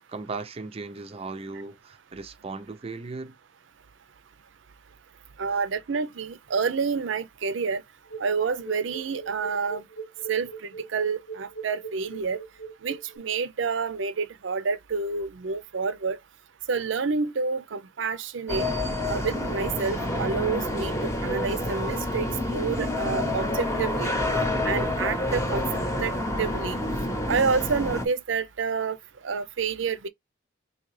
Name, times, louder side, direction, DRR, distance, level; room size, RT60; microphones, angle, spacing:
voice 1, 0.1-3.4, right 3 dB, 30° right, 0.5 m, -37 dB
voice 2, 5.4-7.8 8.2-9.8 10.3-12.4 12.8-16.2 16.7-18.7 19.1-20.9 21.2-24.2 24.6-25.6 26.0-26.1 26.4-26.8 27.3-29.0 29.2-30.1, right 5 dB, 80° right, 0.5 m, -28 dB
sound 1, 8.1-13.2, right 5 dB, 85° left, 1.5 m, -40 dB
sound 2, 18.5-28.1, left 1 dB, 15° left, 0.8 m, -28 dB
3.8 x 2.8 x 3.1 m
head